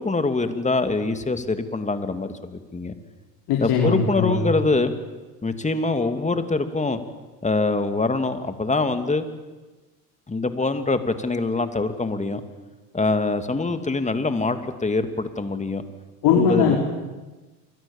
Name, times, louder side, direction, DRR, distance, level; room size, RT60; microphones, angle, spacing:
voice 1, 0.0-2.9 3.6-4.9 5.4-7.0 7.4-9.3 10.3-12.4 12.9-15.8 16.4-16.8, left 3 dB, 15° left, 8 dB, 2.8 m, -24 dB
voice 2, 3.5-4.6 16.2-16.8, left 6 dB, 60° left, 0 dB, 5.2 m, -20 dB
28.0 x 24.5 x 7.4 m, 1.2 s
hypercardioid pair, 80°, 44 cm